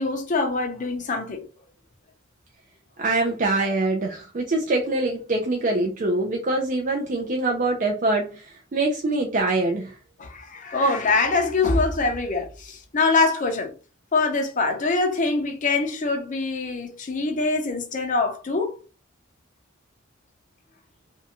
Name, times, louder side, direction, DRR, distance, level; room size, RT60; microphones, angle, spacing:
voice 1, 0.0-1.4 10.2-13.7 14.1-18.7, left 3 dB, 40° left, 0.6 m, -24 dB
voice 2, 3.0-10.0, right 2 dB, 40° right, 0.4 m, -24 dB
2.6 x 2.2 x 2.8 m
head